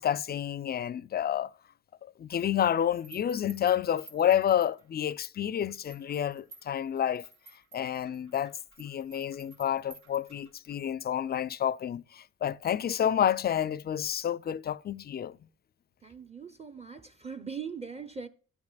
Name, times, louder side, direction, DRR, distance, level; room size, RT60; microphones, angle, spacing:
voice 1, 0.0-1.5 2.2-7.3 7.7-15.4, left 9 dB, 35° left, 0.4 m, -29 dB
sound 1, 2.3-5.1 5.6-10.7, right 4 dB, 80° right, 2.7 m, -55 dB
voice 2, 16.0-18.3, right 6 dB, 20° right, 0.6 m, -40 dB
10.5 x 9.6 x 2.3 m
cardioid pair, 90°, 30 cm